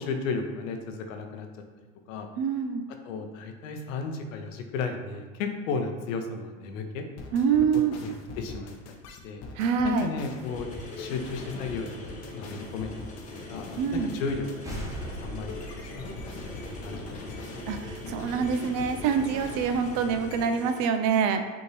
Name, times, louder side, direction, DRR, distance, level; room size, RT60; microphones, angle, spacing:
voice 1, 0.0-1.5 2.1-2.3 3.0-7.0 7.7-8.1 8.4-8.7 9.2-9.4 9.8-10.7 11.0-14.8 15.2-17.3, left 4 dB, 70° left, 5 dB, 0.8 m, -34 dB
voice 2, 2.4-2.8 7.3-7.9 9.6-10.1 13.8-14.1 17.7-21.4, right 6 dB, 45° right, 7 dB, 0.4 m, -25 dB
sound 1, 7.2-20.7, left 3 dB, 40° left, 0.8 m, -42 dB
sound 2, 10.4-20.8, left 2 dB, 20° left, 1.1 m, -43 dB
sound 3, 14.6-18.1, right 1 dB, 10° right, 0.9 m, -41 dB
5.4 x 2.7 x 3.2 m, 1.4 s
hypercardioid pair, 95°, 41 cm